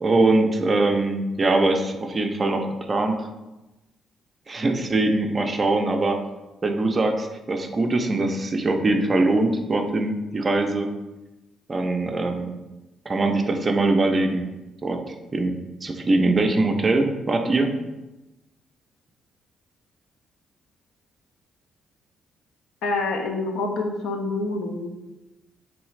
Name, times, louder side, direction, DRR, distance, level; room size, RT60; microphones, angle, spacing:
voice 1, 0.0-3.3 4.5-6.2 6.6-10.9 11.7-12.6 13.1-14.5 14.8-17.7, right 2 dB, 35° right, 5 dB, 0.4 m, -22 dB
voice 2, 22.8-25.0, left 3 dB, 85° left, 3 dB, 0.4 m, -27 dB
3.1 x 2.4 x 3.1 m, 1.0 s
cardioid pair, 90°, 0 cm